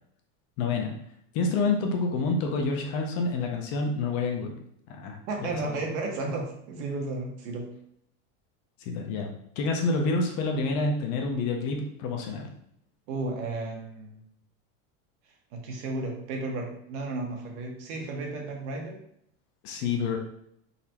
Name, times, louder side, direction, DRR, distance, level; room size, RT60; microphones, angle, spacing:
voice 1, 0.6-0.9 1.3-4.5 4.9-5.8 8.8-9.3 9.6-12.5 19.6-20.2, left 3 dB, 40° left, 2 dB, 0.6 m, -28 dB
voice 2, 5.3-7.7 13.1-14.2 15.5-19.0, right 2 dB, 65° right, 1 dB, 1.1 m, -33 dB
4.0 x 3.2 x 2.9 m, 0.71 s
cardioid pair, 170°, 38 cm